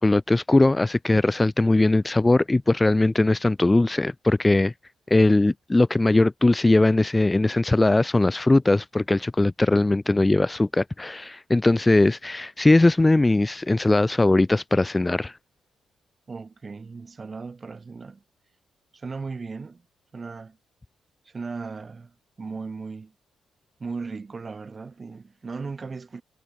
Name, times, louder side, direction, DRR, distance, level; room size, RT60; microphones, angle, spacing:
voice 1, 0.0-4.7 5.1-15.3, left 2 dB, 15° left, 0.4 m, -20 dB
voice 2, 16.3-18.2 18.9-19.8 20.1-20.6 21.3-23.1 23.8-26.2, right 4 dB, 35° right, 2.3 m, -36 dB
cardioid pair, 80°, 0 cm